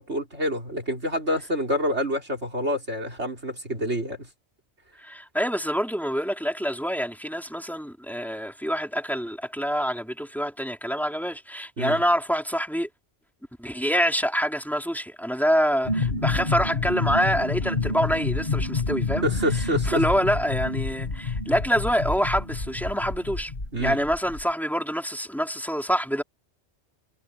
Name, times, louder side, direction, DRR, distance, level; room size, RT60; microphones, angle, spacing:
voice 1, 0.0-4.3 11.8-12.0 19.2-20.0 23.7-24.0, equal, 80° right, 6.0 m, -27 dB
voice 2, 5.0-12.9 13.6-19.2 19.9-23.5 23.8-26.2, equal, ahead, 4.1 m, -26 dB
sound 1, 15.9-24.4, left 3 dB, 45° left, 2.4 m, -28 dB
omnidirectional pair, 1.1 m